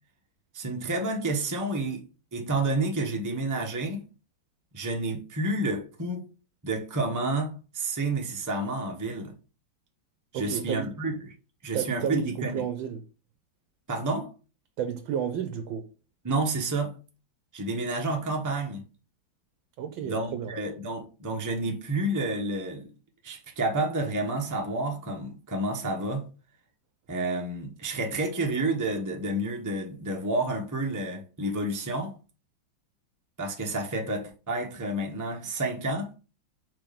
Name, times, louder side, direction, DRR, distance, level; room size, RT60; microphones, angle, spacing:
voice 1, 0.5-2.1 2.3-4.0 4.7-6.3 6.6-9.3 10.3-11.3 11.6-12.6 13.9-14.3 16.2-17.0 17.5-18.8 20.0-22.9 23.2-26.3 27.1-32.2 33.4-36.1, right 2 dB, 15° right, 0.9 m, -30 dB
voice 2, 10.3-10.9 11.7-13.0 14.8-15.9 19.8-20.5, right 8 dB, 90° right, 1.5 m, -32 dB
4.6 x 4.2 x 5.2 m
omnidirectional pair, 2.1 m